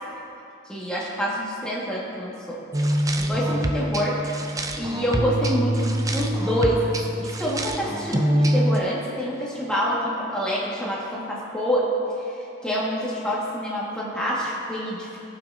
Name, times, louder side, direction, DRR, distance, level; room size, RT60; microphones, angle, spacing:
voice 1, 0.7-2.6 3.2-4.2 4.8-11.9 12.3-12.4 12.6-15.1, equal, 5° left, -6 dB, 1.5 m, -27 dB
sound 1, 2.7-8.8, right 1 dB, 15° right, 0.4 m, -25 dB
17.0 x 5.7 x 2.6 m, 2.7 s
head